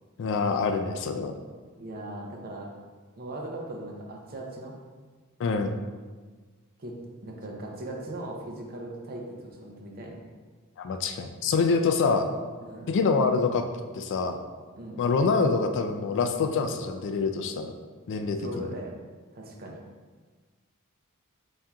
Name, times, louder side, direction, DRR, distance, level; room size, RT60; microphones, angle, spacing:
voice 1, 0.2-1.3 5.4-5.8 10.8-12.2 12.9-13.6 13.9-14.4 15.0-17.7 18.1-18.7, left 4 dB, 55° left, 6 dB, 0.3 m, -26 dB
voice 2, 1.8-2.7 3.2-4.7 6.8-6.9 7.2-10.3 12.6-12.9 14.8-15.0 18.4-18.9 19.3-19.8, right 1 dB, 45° right, 0 dB, 0.6 m, -39 dB
4.1 x 3.6 x 2.3 m, 1.4 s
head